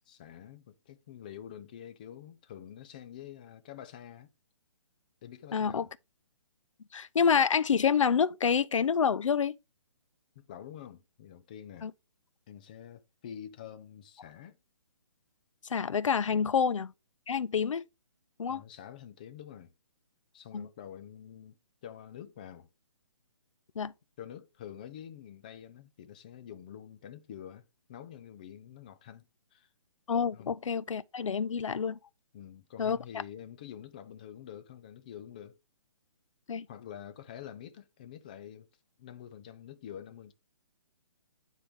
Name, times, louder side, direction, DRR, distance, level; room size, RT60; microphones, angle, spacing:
voice 1, 0.1-4.3 5.2-5.9 10.4-11.9 12.5-14.6 16.3-16.5 18.5-19.7 20.3-22.7 24.2-29.3 29.5-29.7 30.3-30.5 32.3-35.6 36.7-38.7 39.0-40.3, left 9 dB, 15° left, 0.4 m, -47 dB
voice 2, 5.5-5.9 6.9-9.5 11.8-11.9 15.7-16.9 17.3-17.8 18.4-18.6 20.5-20.7 23.8-23.9 30.1-32.0 32.8-33.0 36.5-36.7, left 6 dB, 90° left, 0.6 m, -27 dB
9.7 x 3.8 x 3.5 m
hypercardioid pair, 165°, 16 cm